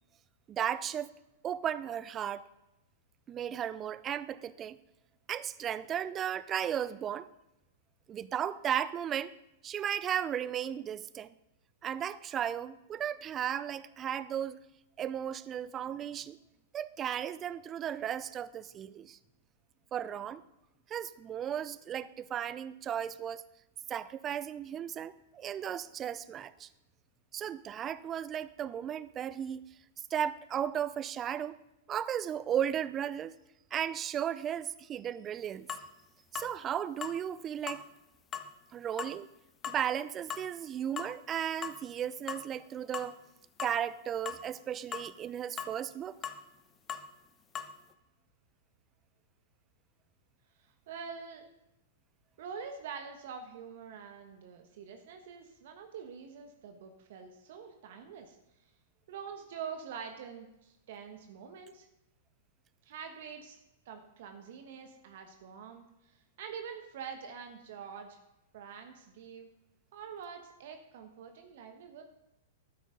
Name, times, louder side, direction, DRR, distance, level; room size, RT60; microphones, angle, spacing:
voice 1, 0.5-1.1 1.4-2.4 3.3-4.8 5.3-7.3 8.1-9.3 9.6-11.3 11.8-14.6 15.0-16.4 16.7-19.2 19.9-20.4 20.9-23.4 23.9-26.7 27.3-29.6 30.1-31.6 31.9-33.3 33.7-35.7 36.3-37.8 38.7-39.3 39.7-43.1 43.6-46.2, right 9 dB, 30° right, 17 dB, 0.5 m, -35 dB
sound 1, 35.7-35.9 36.3-36.5 37.0-37.2 37.7-37.8 38.3-38.5 39.0-39.2 39.6-39.8 40.3-40.5 41.0-41.1 41.6-41.8 42.3-42.6 42.9-43.1 43.6-43.8 44.2-44.4 44.9-45.1 45.6-45.7 46.2-46.4 46.9-47.1 47.5-47.7, left 7 dB, 25° left, 0.8 m, -39 dB
voice 2, 50.6-51.4 52.4-58.4 59.1-61.9 62.8-63.6 63.8-68.2 68.5-69.5 69.9-72.0, right 6 dB, 60° right, 5 dB, 1.2 m, -45 dB
12.5 x 9.4 x 3.8 m, 0.89 s
hypercardioid pair, 105°, 0 cm